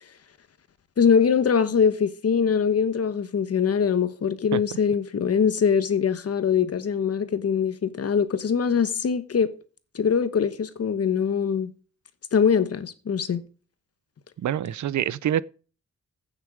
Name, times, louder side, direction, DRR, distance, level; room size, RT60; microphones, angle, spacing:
voice 1, 1.0-9.5 9.9-11.7 12.3-13.4, left 6 dB, 55° left, 1.2 m, -22 dB
voice 2, 14.4-15.4, right 10 dB, 75° right, 0.6 m, -25 dB
15.5 x 6.6 x 5.0 m
wide cardioid pair, 160°, 29 cm